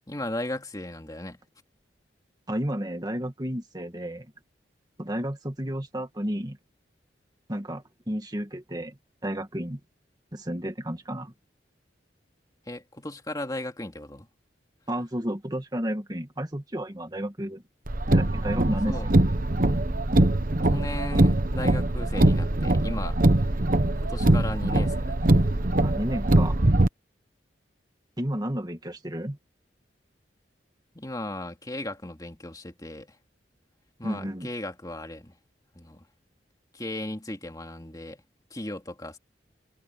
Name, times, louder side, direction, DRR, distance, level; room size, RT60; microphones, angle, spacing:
voice 1, 0.1-1.4 12.7-14.3 18.9-19.1 20.6-23.2 24.0-25.3 30.9-33.2 34.0-35.4 35.7-36.1 36.7-38.2 38.5-39.2, left 1 dB, 20° left, 2.4 m, -36 dB
voice 2, 2.5-4.3 5.0-6.6 7.5-9.0 9.2-9.8 10.3-11.3 14.9-17.6 18.1-19.0 25.8-26.6 28.2-29.4 34.0-34.5, equal, 20° right, 2.0 m, -32 dB
Car, 17.9-26.9, right 1 dB, 50° right, 1.1 m, -22 dB
head